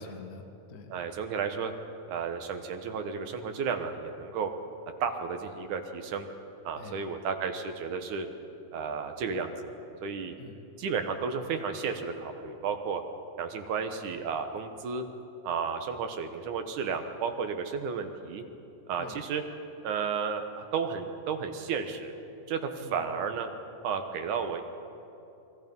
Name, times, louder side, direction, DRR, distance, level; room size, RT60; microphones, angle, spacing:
voice 1, 0.0-0.9 6.8-7.1 10.4-10.7 19.0-19.2 22.8-23.1, left 4 dB, 60° left, 5 dB, 0.9 m, -46 dB
voice 2, 0.9-1.7 2.1-4.5 5.0-6.3 6.6-8.3 8.7-9.7 10.0-10.3 10.8-13.0 13.4-15.1 15.4-18.4 18.9-19.4 19.8-22.1 22.5-23.5 23.8-24.6, right 6 dB, 65° right, 6 dB, 2.6 m, -33 dB
29.0 x 21.5 x 5.4 m, 2.9 s
omnidirectional pair, 4.0 m